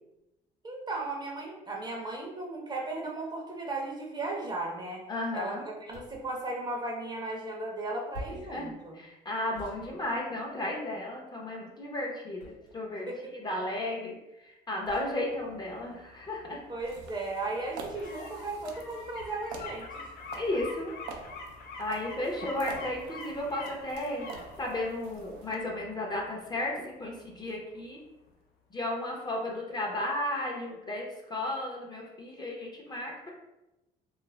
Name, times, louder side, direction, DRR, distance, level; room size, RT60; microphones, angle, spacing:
voice 1, 0.6-5.1 5.3-5.5 5.8-9.0 13.1-13.3 16.7-20.1, right 2 dB, 25° right, -1 dB, 0.6 m, -36 dB
voice 2, 5.1-5.6 8.5-16.6 20.4-20.9 21.8-24.3 24.6-28.0 28.7-33.3, left 1 dB, 25° left, -1 dB, 0.6 m, -34 dB
sound 1, 5.9-6.3 8.1-8.5 9.5-10.7 12.4-13.0 14.8-15.1 16.8-17.2 19.2-19.6 20.6-20.8, left 1 dB, 90° left, 1.0 m, -47 dB
sound 2, 15.1-27.9 28.3-28.4, left 3 dB, 65° left, 0.5 m, -47 dB
sound 3, 16.8-25.5, right 5 dB, 85° right, 0.4 m, -47 dB
2.4 x 2.1 x 3.1 m, 0.95 s
cardioid pair, 90°, 17 cm